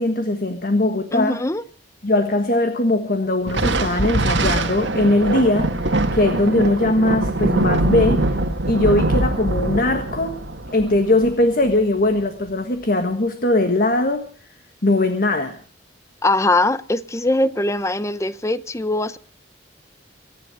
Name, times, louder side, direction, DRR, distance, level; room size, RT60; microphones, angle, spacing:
voice 1, 0.0-1.4 2.0-8.4 8.7-10.4 10.7-14.3 14.8-15.6, left 2 dB, 45° left, 1.5 m, -20 dB
voice 2, 1.1-1.6 16.2-19.2, left 2 dB, 15° left, 0.7 m, -21 dB
Thunder, 3.5-12.2, right 2 dB, 65° right, 1.7 m, -23 dB
25.0 x 10.5 x 4.9 m
head